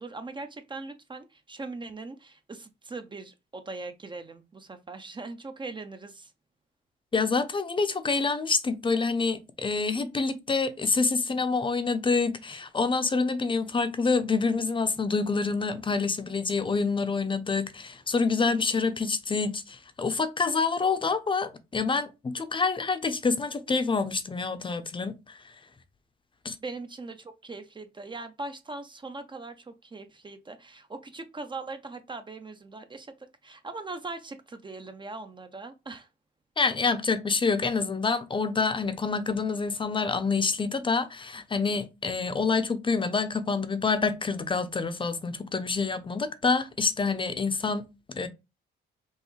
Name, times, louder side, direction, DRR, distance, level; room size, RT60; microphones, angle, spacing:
voice 1, 0.0-6.3 26.6-33.1 33.4-36.1, right 3 dB, 25° right, 0.6 m, -40 dB
voice 2, 7.1-25.2 26.4-26.6 36.6-47.9 48.2-48.3, left 4 dB, 25° left, 0.7 m, -27 dB
5.4 x 2.7 x 3.2 m
cardioid pair, 90°, 20 cm